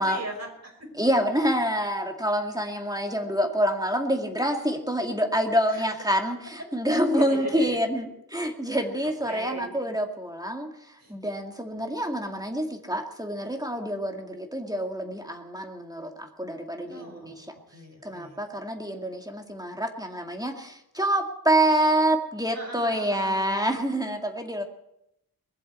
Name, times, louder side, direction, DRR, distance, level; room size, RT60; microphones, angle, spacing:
voice 1, 0.0-0.9 5.7-5.9 6.6-6.7 7.1-7.8 8.7-9.7 11.0-11.1 16.9-18.4 22.5-23.4, right 1 dB, 40° right, 2 dB, 5.6 m, -39 dB
voice 2, 1.0-10.7 11.1-17.5 18.0-24.6, right 1 dB, 10° right, 3 dB, 2.2 m, -27 dB
21.5 x 7.6 x 8.2 m, 0.83 s
wide cardioid pair, 55°, 38 cm